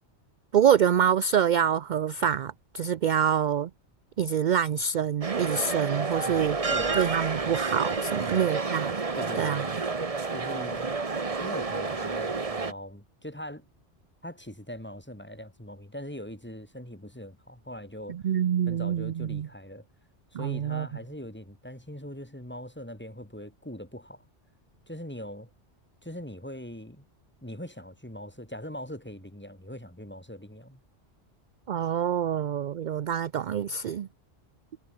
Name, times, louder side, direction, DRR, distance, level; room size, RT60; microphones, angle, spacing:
voice 1, 0.5-3.7 4.2-6.6 6.9-9.0 9.4-9.8 18.1-19.5 20.3-20.9 31.7-34.1, right 8 dB, 55° right, 0.6 m, -26 dB
sound 1, 5.2-12.7, right 4 dB, 30° right, 1.2 m, -30 dB
voice 2, 6.2-7.0 8.1-8.5 9.1-9.8 10.3-10.9 11.4-13.7 14.2-18.2 18.7-19.8 20.3-24.2 24.9-25.5 26.0-27.0 27.4-30.8, equal, 10° left, 2.3 m, -41 dB
omnidirectional pair, 1.2 m